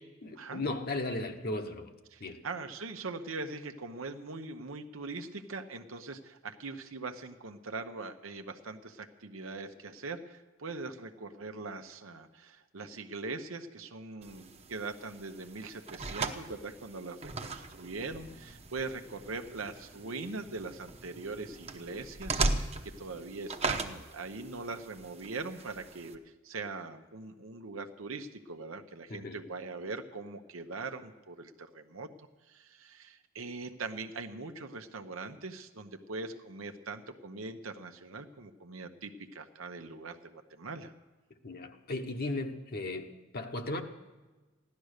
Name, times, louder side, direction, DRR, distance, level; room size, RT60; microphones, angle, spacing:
voice 1, 0.2-1.9 2.2-2.4 29.1-29.4 41.4-43.8, left 2 dB, 50° left, 5 dB, 1.1 m, -36 dB
voice 2, 2.1-32.1 32.5-40.9, right 3 dB, 80° right, 6 dB, 0.9 m, -41 dB
sound 1, 14.2-26.1, right 3 dB, 30° right, 1.0 m, -38 dB
15.5 x 11.5 x 6.6 m, 1.2 s
head